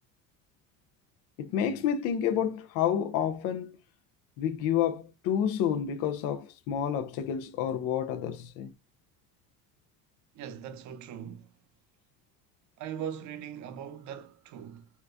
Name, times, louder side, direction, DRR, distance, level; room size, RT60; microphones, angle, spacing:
voice 1, 1.4-3.8 4.4-8.7, left 9 dB, 70° left, 0.6 m, -29 dB
voice 2, 10.3-11.5 12.8-14.9, right 9 dB, 55° right, 0.7 m, -40 dB
3.8 x 2.2 x 2.4 m
cardioid pair, 115°, 35 cm